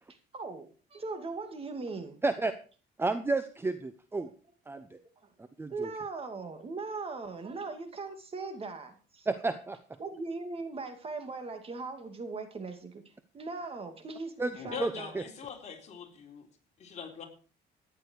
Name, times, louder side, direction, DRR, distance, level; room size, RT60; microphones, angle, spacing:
voice 1, 0.1-2.2 4.2-4.3 4.7-5.3 5.7-9.3 10.0-13.0 13.3-15.1, right 3 dB, 35° right, 7 dB, 2.6 m, -39 dB
voice 2, 3.0-4.3 4.7-5.0 5.4-5.9 9.3-9.8 14.4-14.5 14.8-15.2, right 3 dB, 15° right, 11 dB, 0.9 m, -31 dB
voice 3, 14.6-16.5 16.8-17.3, left 6 dB, 45° left, 1 dB, 3.9 m, -42 dB
14.5 x 10.5 x 4.7 m, 0.39 s
cardioid pair, 110°, 17 cm